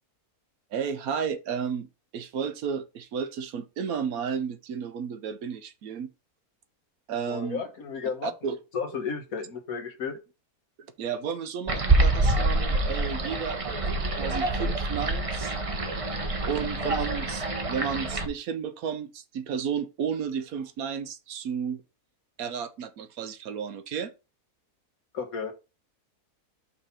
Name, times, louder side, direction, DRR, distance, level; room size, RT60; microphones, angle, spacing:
voice 1, 0.7-1.9 2.1-6.1 7.1-7.6 8.2-8.6 11.0-13.8 14.2-15.5 16.5-21.8 22.4-24.1, right 7 dB, 70° right, 1.2 m, -32 dB
voice 2, 7.3-10.1 25.1-25.5, left 6 dB, 65° left, 1.6 m, -33 dB
sound 1, 11.7-18.3, right 2 dB, 30° right, 0.8 m, -26 dB
5.6 x 4.1 x 5.6 m
omnidirectional pair, 1.6 m